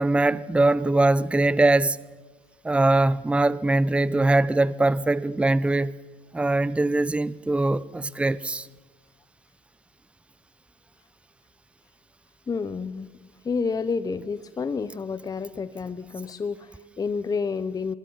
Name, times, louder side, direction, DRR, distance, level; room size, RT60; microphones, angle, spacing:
voice 1, 0.0-2.0 2.6-5.9 6.3-8.7, right 2 dB, 10° right, 0.6 m, -22 dB
voice 2, 12.5-13.1 13.4-17.9, left 5 dB, 25° left, 0.8 m, -29 dB
24.0 x 20.0 x 5.7 m
supercardioid pair, 90°, 14 cm